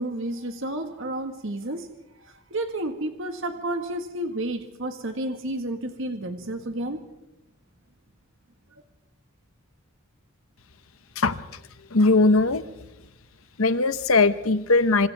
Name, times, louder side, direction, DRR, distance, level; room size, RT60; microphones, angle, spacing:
voice 1, 0.0-1.9 2.2-7.0, right 1 dB, 65° right, 5 dB, 1.7 m, -31 dB
voice 2, 11.9-12.6 13.6-15.1, left 3 dB, 85° left, 12 dB, 1.1 m, -19 dB
28.5 x 26.0 x 3.5 m, 0.93 s
head